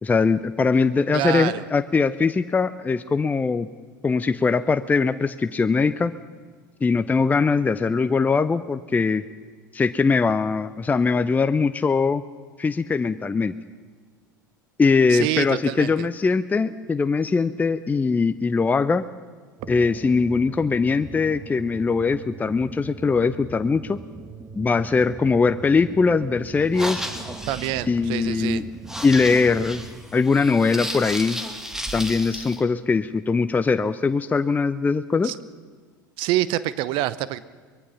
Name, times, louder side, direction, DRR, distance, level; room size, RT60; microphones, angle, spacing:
voice 1, 0.0-3.7 4.0-6.1 6.8-9.2 9.7-12.2 12.6-13.5 14.8-19.1 19.7-24.0 24.6-27.1 27.9-28.7 29.0-29.8 30.1-31.4 31.9-35.3, left 4 dB, 15° left, 12 dB, 0.6 m, -21 dB
voice 2, 1.1-1.6 15.1-15.9 27.5-28.6 35.2-35.4 36.2-37.4, right 15 dB, 50° right, 17 dB, 0.7 m, -26 dB
sound 1, 19.6-29.9, right 4 dB, 25° right, 1.7 m, -40 dB
sound 2, 26.6-32.6, equal, 5° right, 2.1 m, -34 dB
23.5 x 21.0 x 5.7 m, 1.5 s
figure-of-eight pair, 75°, 11 cm